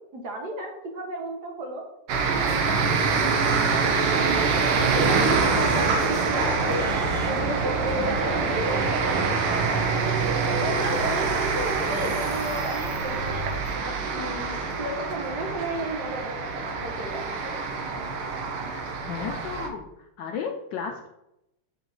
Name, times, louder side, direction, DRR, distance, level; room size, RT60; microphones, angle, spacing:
voice 1, 0.0-1.8 2.2-3.2 4.1-6.8 7.2-10.1 10.4-17.5, right 1 dB, 55° right, 1 dB, 1.3 m, -33 dB
sound 1, 2.1-19.7, right 4 dB, 90° right, 1.7 m, -25 dB
sound 2, 3.5-12.1, right 1 dB, 20° right, 1.1 m, -40 dB
sound 3, 10.1-13.7, left 1 dB, 30° left, 0.7 m, -40 dB
voice 2, 18.7-21.1, left 6 dB, 75° left, 3 dB, 1.0 m, -34 dB
6.9 x 4.0 x 3.7 m, 0.86 s
omnidirectional pair, 2.4 m